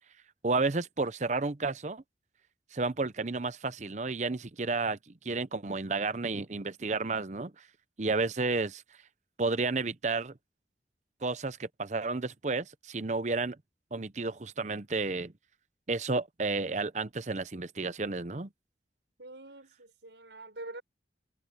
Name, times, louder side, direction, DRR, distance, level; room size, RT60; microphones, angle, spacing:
voice 1, 0.4-2.0 2.7-7.5 8.0-8.8 9.4-10.3 11.2-13.6 13.9-15.3 15.9-18.5, right 3 dB, 40° right, 0.7 m, -31 dB
voice 2, 19.2-20.8, right 2 dB, 90° right, 6.5 m, -45 dB
head